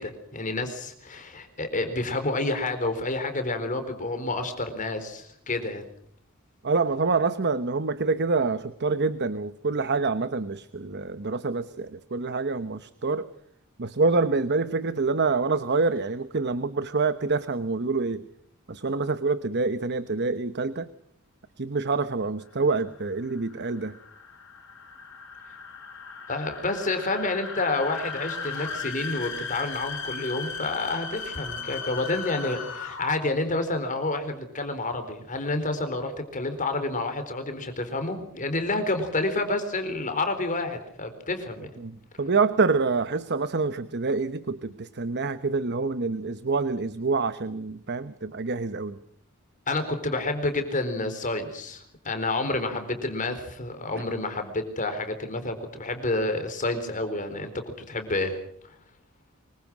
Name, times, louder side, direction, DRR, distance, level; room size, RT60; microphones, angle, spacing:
voice 1, 0.0-5.8 26.3-41.7 49.7-57.5 57.9-58.4, left 2 dB, 40° left, 8 dB, 4.1 m, -29 dB
voice 2, 6.6-13.3 13.8-18.2 18.7-20.9 21.6-23.9 41.8-49.0, right 4 dB, 55° right, 12 dB, 1.0 m, -26 dB
sound 1, 22.6-33.3, left 5 dB, 65° left, 5.2 m, -37 dB
25.0 x 23.5 x 6.2 m, 0.66 s
head